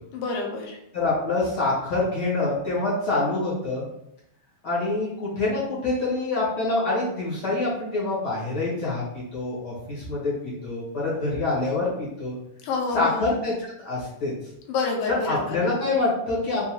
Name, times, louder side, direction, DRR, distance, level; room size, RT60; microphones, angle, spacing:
voice 1, 0.1-0.8 12.6-13.2 14.7-15.6, left 4 dB, 85° left, 0 dB, 2.2 m, -28 dB
voice 2, 0.9-3.8 4.6-9.0 9.3-12.4 12.9-14.3 15.1-16.6, left 2 dB, 65° left, -8 dB, 1.0 m, -26 dB
5.4 x 2.2 x 2.9 m, 0.79 s
omnidirectional pair, 3.8 m